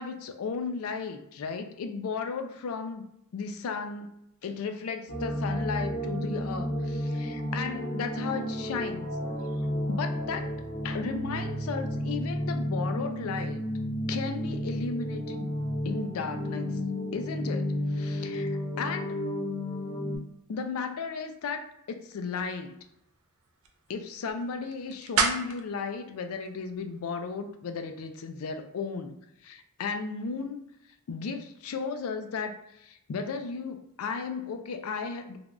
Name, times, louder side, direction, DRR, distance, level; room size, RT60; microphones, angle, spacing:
voice 1, 0.0-3.0 3.3-4.1 4.4-9.2 9.9-10.5 10.8-13.6 14.1-15.5 15.8-16.8 17.1-19.2 20.5-22.8 23.9-30.6 31.1-35.4, left 5 dB, 75° left, 7 dB, 0.4 m, -35 dB
sound 1, 5.1-20.2, equal, 55° left, 0.8 m, -32 dB
sound 2, 22.2-27.3, right 5 dB, 75° right, 0.4 m, -35 dB
3.3 x 2.2 x 2.4 m, 0.80 s
head